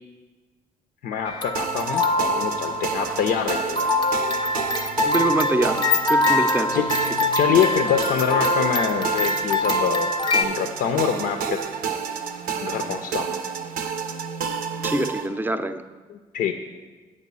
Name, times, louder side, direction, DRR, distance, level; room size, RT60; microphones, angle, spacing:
voice 1, 1.0-3.9 6.7-6.8 7.3-10.1 10.3-11.6 12.6-13.4 16.3-16.5, left 8 dB, 75° left, 6 dB, 0.5 m, -25 dB
sound 1, 1.3-10.4, left 2 dB, 30° left, 0.6 m, -24 dB
sound 2, 1.5-15.3, right 7 dB, 75° right, 0.6 m, -30 dB
voice 2, 5.1-6.8 7.1-7.2 14.8-15.8, right 1 dB, 15° right, 10 dB, 0.5 m, -25 dB
8.3 x 5.3 x 5.4 m, 1.3 s
supercardioid pair, 55°, 15 cm